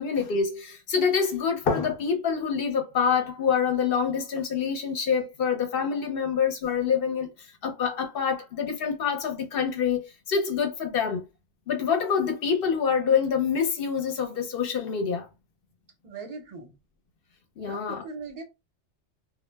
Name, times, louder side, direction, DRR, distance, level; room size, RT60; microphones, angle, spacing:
voice 1, 0.0-7.3 7.6-11.2 11.7-15.3 17.6-18.0, left 6 dB, 60° left, 0.8 m, -26 dB
voice 2, 16.0-16.7 17.6-18.4, right 4 dB, 45° right, 0.6 m, -40 dB
2.1 x 2.0 x 3.2 m
omnidirectional pair, 1.2 m